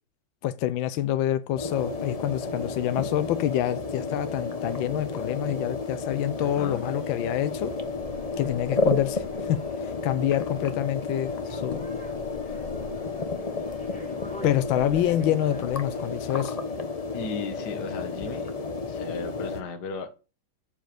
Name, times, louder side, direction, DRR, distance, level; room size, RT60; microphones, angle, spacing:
voice 1, 0.4-7.7 8.4-11.9 14.4-16.6, left 12 dB, 85° left, 1.4 m, -27 dB
sound 1, 1.6-19.6, left 3 dB, 30° left, 0.7 m, -32 dB
sound 2, 6.3-16.4, left 2 dB, 5° left, 2.3 m, -48 dB
voice 2, 6.4-6.9 17.1-18.5 18.9-20.2, left 4 dB, 60° left, 1.8 m, -36 dB
7.5 x 7.4 x 6.7 m
omnidirectional pair, 2.1 m